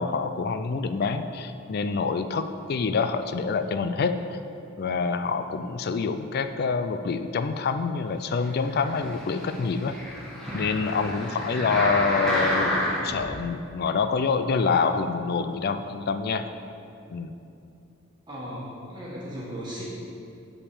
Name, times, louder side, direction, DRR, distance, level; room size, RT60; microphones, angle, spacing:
voice 1, 0.0-4.4 4.8-10.0 10.5-16.5 17.1-17.3, left 4 dB, 50° left, 9 dB, 0.4 m, -26 dB
sound 1, 8.6-13.2 13.8-13.9, left 1 dB, ahead, 1.6 m, -29 dB
voice 2, 18.3-19.8, equal, 20° right, -7 dB, 1.6 m, -36 dB
8.6 x 5.0 x 6.9 m, 2.6 s
head